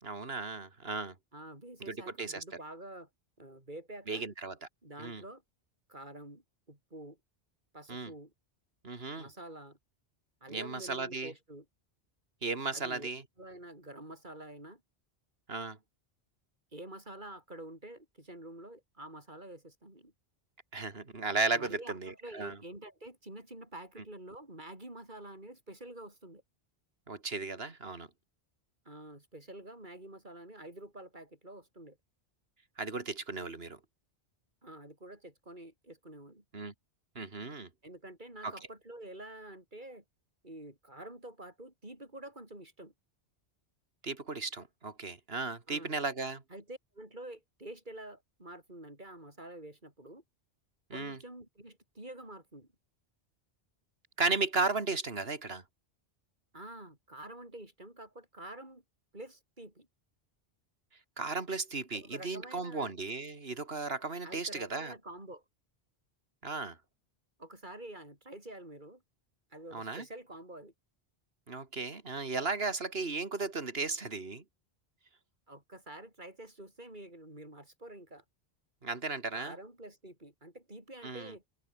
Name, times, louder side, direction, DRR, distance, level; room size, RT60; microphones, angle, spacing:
voice 1, 0.0-1.1 1.9-2.4 4.1-4.7 5.0-5.2 7.9-8.1 8.8-9.3 10.5-11.3 12.4-13.2 15.5-15.8 20.7-22.6 27.1-28.1 32.8-33.8 36.5-36.7 37.1-37.7 38.4-38.5 44.0-46.4 50.9-51.2 54.2-55.6 61.2-64.9 66.4-66.8 69.7-70.0 71.5-74.4 78.8-79.5 81.0-81.3, right 3 dB, 65° right, 2.9 m, -35 dB
voice 2, 1.3-3.1 3.4-4.2 4.8-5.4 5.9-7.2 7.7-8.3 9.2-9.8 10.4-11.7 12.7-13.1 13.4-14.8 16.7-20.1 21.5-26.4 28.9-32.0 34.6-36.4 37.8-40.0 40.4-42.9 45.7-46.0 46.5-50.2 50.9-52.7 56.5-58.8 59.1-59.9 61.9-62.9 64.2-65.4 67.4-69.0 69.5-70.7 75.5-78.2 79.3-81.4, right 1 dB, 45° right, 7.1 m, -48 dB
open air
omnidirectional pair, 1.1 m